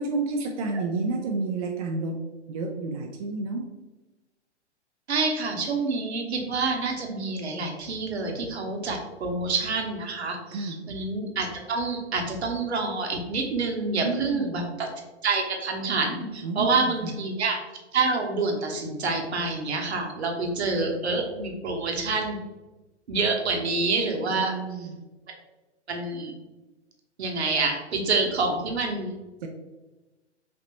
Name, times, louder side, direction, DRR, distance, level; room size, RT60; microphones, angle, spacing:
voice 1, 0.0-3.7 10.5-10.8 13.9-14.8 16.4-17.1 24.2-25.0 29.4-29.5, right 3 dB, 35° right, 2 dB, 0.4 m, -30 dB
voice 2, 5.1-14.9 15.2-17.6 17.9-22.4 23.1-24.9 25.9-26.3 27.2-29.1, right 3 dB, 65° right, 2 dB, 1.1 m, -27 dB
5.1 x 2.9 x 2.9 m, 1.1 s
figure-of-eight pair, 110°, 35 cm